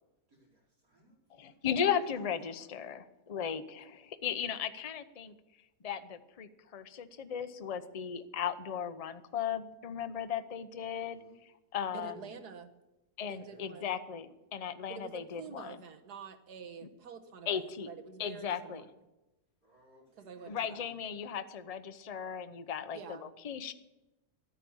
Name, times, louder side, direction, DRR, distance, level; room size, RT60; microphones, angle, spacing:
voice 1, 0.3-1.6 2.1-3.0 4.4-4.5 10.7-11.4 11.8-12.3 13.3-13.7 19.6-20.8, right 2 dB, 60° right, -4 dB, 5.3 m, -63 dB
voice 2, 1.4-5.3 5.8-11.2 11.7-12.1 13.2-15.8 17.5-17.9 18.2-18.8 20.5-23.0 23.4-23.7, left 8 dB, 35° left, 10 dB, 0.6 m, -36 dB
voice 3, 11.9-12.7 13.3-14.0 14.9-18.9 20.2-20.9 22.9-23.3, right 6 dB, 85° right, 7 dB, 1.8 m, -47 dB
13.0 x 9.8 x 7.1 m, 1.0 s
omnidirectional pair, 1.7 m